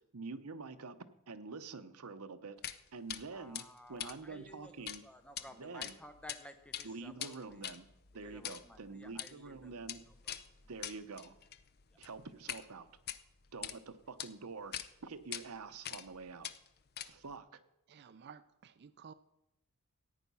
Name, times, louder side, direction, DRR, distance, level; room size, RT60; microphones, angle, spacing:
voice 1, 0.1-1.0 1.3-2.6 2.9-5.0 5.6-6.0 6.8-7.8 8.1-10.0 10.7-11.4 12.0-12.9 13.5-14.7 15.0-16.5 17.0-17.6, right 4 dB, 80° right, 10 dB, 0.9 m, -46 dB
sound 1, 2.6-2.8 3.1-3.2 3.5-5.0 5.3-5.4 5.8-6.4 6.6-12.6 13.0-13.8 14.2-14.3 14.7-14.9 15.3-15.4 15.8-16.1 16.4-17.4, left 10 dB, 45° left, 0.6 m, -43 dB
voice 2, 3.3-7.7 8.2-10.3 11.9-12.0, left 1 dB, 5° left, 7 dB, 0.8 m, -55 dB
voice 3, 17.9-19.1, right 6 dB, 50° right, 13 dB, 0.4 m, -54 dB
14.0 x 9.3 x 5.5 m, 0.89 s
head